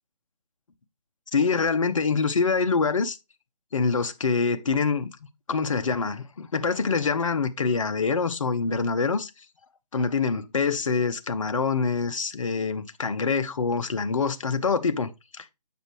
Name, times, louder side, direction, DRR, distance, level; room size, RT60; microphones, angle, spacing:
voice 1, 1.3-3.2 3.7-5.1 5.5-9.3 9.9-15.1 15.4-15.5, left 4 dB, 50° left, 0.7 m, -25 dB
7.6 x 5.1 x 3.0 m
figure-of-eight pair, 150°, 21 cm